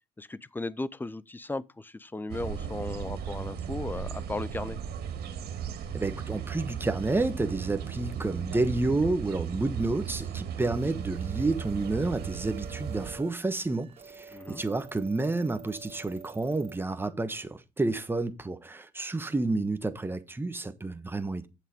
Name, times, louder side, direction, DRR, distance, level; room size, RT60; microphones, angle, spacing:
voice 1, 0.2-4.8 14.3-14.6, left 2 dB, 10° left, 0.6 m, -36 dB
sound 1, 2.3-13.2, right 8 dB, 70° right, 2.4 m, -36 dB
voice 2, 5.9-21.5, right 2 dB, 15° right, 1.2 m, -30 dB
sound 2, 10.6-16.8, right 5 dB, 35° right, 3.5 m, -48 dB
8.5 x 7.3 x 5.1 m
cardioid pair, 110°, 17 cm